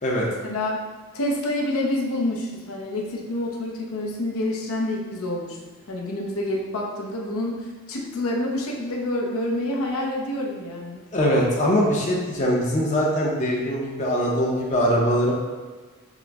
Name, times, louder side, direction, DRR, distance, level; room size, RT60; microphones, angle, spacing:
voice 1, 0.3-0.8 1.1-11.0, left 1 dB, 70° left, -1 dB, 0.6 m, -28 dB
voice 2, 11.1-15.3, equal, 35° left, -3 dB, 0.6 m, -22 dB
6.1 x 2.1 x 3.4 m, 1.4 s
head